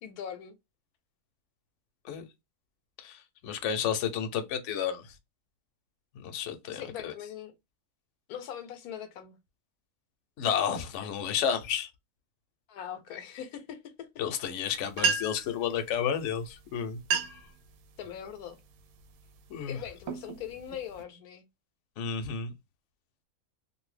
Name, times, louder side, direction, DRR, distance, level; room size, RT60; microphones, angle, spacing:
voice 1, 0.0-0.5 6.7-7.5 8.3-9.4 12.7-14.1 18.0-18.6 19.7-21.4, left 9 dB, 80° left, 1.1 m, -41 dB
voice 2, 3.0-5.1 6.2-7.1 10.4-11.9 14.2-17.0 19.5-19.8 22.0-22.5, left 8 dB, 60° left, 0.8 m, -31 dB
sound 1, 14.7-14.8 14.9-15.6 16.4-16.6 16.9-17.5 18.0-18.4 19.0-19.3 19.8-21.0, right 6 dB, 75° right, 1.0 m, -31 dB
2.6 x 2.6 x 3.2 m
omnidirectional pair, 1.6 m